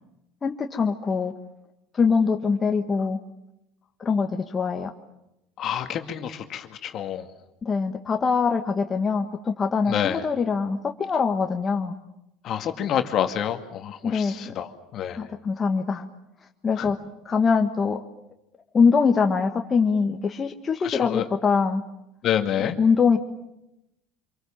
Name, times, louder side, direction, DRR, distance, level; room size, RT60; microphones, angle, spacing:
voice 1, 0.4-1.3 1.9-3.2 4.0-4.9 7.6-12.0 14.0-14.5 15.1-16.0 16.6-17.0 17.2-18.0 18.7-21.8 22.6-23.2, left 5 dB, 30° left, 4 dB, 1.7 m, -23 dB
voice 2, 5.6-7.3 9.9-10.2 12.4-15.2 16.8-16.9 20.8-21.3 22.2-22.8, left 10 dB, 50° left, 7 dB, 2.2 m, -28 dB
26.5 x 24.0 x 7.4 m, 0.86 s
hypercardioid pair, 80°, 0 cm